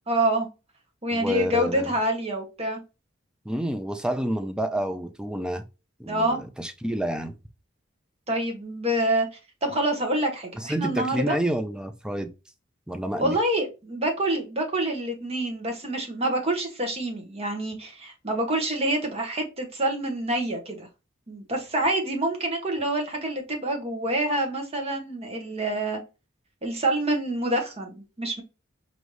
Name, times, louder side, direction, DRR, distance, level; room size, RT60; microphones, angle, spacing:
voice 1, 0.1-0.5 1.0-2.8 6.1-6.4 8.3-9.3 9.6-11.4 13.2-20.9 21.3-26.0 26.6-28.4, right 1 dB, 30° right, 1.0 m, -27 dB
voice 2, 1.1-1.9 3.4-5.7 6.0-7.4 10.6-12.3 12.9-13.4, right 1 dB, 5° right, 0.4 m, -29 dB
5.0 x 2.6 x 3.1 m
head